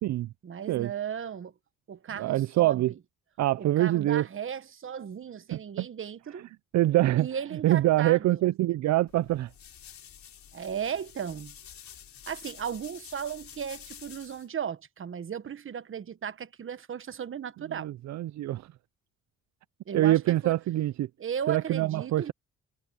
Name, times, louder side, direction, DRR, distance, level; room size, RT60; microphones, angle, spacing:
voice 1, 0.4-1.5 1.9-3.0 3.6-6.5 7.1-8.4 10.5-11.5 12.3-17.9 19.9-20.5 21.2-22.3, right 8 dB, 45° right, 1.3 m, -36 dB
voice 2, 2.2-2.9 3.4-4.3 5.5-5.9 6.7-7.3 7.6-9.5 17.8-18.7 19.9-21.1 21.5-22.3, right 15 dB, 65° right, 0.5 m, -25 dB
sound 1, 9.1-14.5, left 9 dB, 65° left, 5.3 m, -49 dB
cardioid pair, 90°, 30 cm